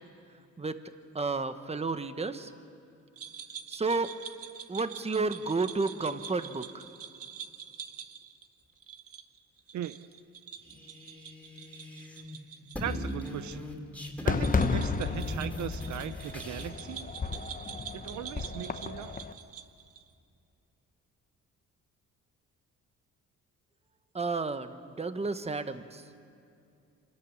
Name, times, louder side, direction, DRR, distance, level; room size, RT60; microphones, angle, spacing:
voice 1, 1.1-2.5 3.7-4.1 4.7-6.8 24.1-26.0, right 3 dB, 20° right, 10 dB, 1.2 m, -31 dB
sound 1, 3.2-13.3 13.6-13.7 14.3-20.1, right 8 dB, 50° right, 1.2 m, -46 dB
sound 2, 10.6-12.3 12.6-16.7, left 1 dB, 5° left, 3.5 m, -39 dB
voice 2, 12.8-13.7 14.2-17.1 17.9-19.1, right 11 dB, 70° right, 13 dB, 0.7 m, -39 dB
Fireworks, 14.3-19.3, left 4 dB, 25° left, 1.0 m, -33 dB
26.5 x 13.5 x 9.6 m, 2.5 s
cardioid pair, 90°, 30 cm